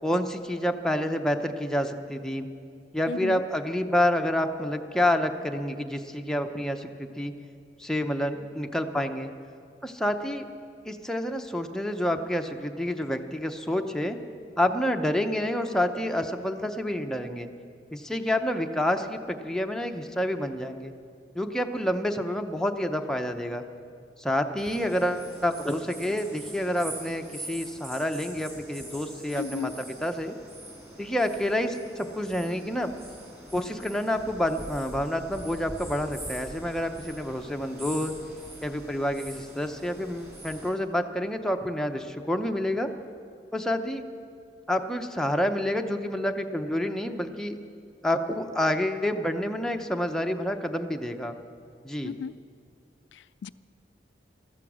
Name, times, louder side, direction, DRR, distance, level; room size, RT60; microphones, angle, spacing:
voice 1, 0.0-2.5 2.9-7.3 7.8-9.3 9.8-10.4 10.8-14.2 14.6-17.5 17.9-20.9 21.3-23.6 24.2-30.4 31.0-32.9 33.5-38.1 38.6-42.9 43.5-44.0 44.7-47.6 48.0-51.3 51.8-52.2, left 1 dB, 5° left, 4 dB, 0.7 m, -28 dB
voice 2, 3.1-3.4 29.3-29.8 52.0-52.3 53.1-53.5, left 6 dB, 80° left, 15 dB, 0.3 m, -35 dB
sound 1, 24.6-40.7, right 1 dB, 15° right, 4.9 m, -44 dB
15.0 x 14.0 x 6.2 m, 2.4 s
head